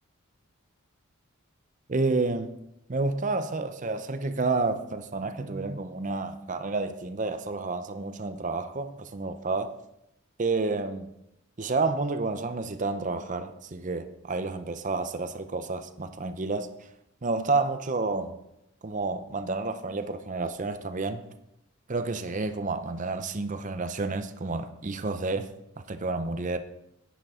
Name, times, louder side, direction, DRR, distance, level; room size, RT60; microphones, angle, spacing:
voice 1, 1.9-2.5 2.9-9.7 10.4-11.1 11.6-16.7 17.2-18.3 18.8-21.2 21.9-25.5 25.9-26.6, right 3 dB, 35° right, 9 dB, 0.6 m, -30 dB
10.5 x 9.3 x 3.7 m, 0.83 s
head